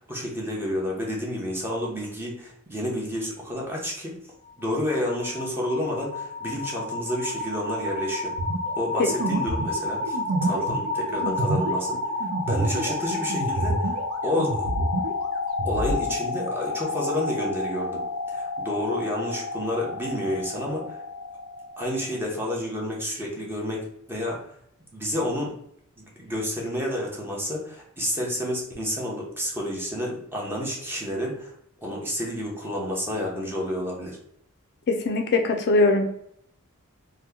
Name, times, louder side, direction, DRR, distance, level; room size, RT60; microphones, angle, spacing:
voice 1, 0.0-4.1 4.6-8.3 8.8-14.0 14.2-14.7 15.6-18.0 18.3-21.0 21.8-24.4 24.9-25.5 26.0-31.5 31.8-34.2, left 1 dB, 10° right, -2 dB, 0.8 m, -30 dB
sound 1, 4.5-22.3, left 3 dB, 60° right, 1.1 m, -31 dB
sound 2, 8.4-14.1 14.4-16.0, right 2 dB, 75° right, 0.5 m, -28 dB
voice 2, 34.9-36.0, left 3 dB, 50° left, 3 dB, 0.4 m, -21 dB
2.9 x 2.2 x 3.5 m, 0.71 s
head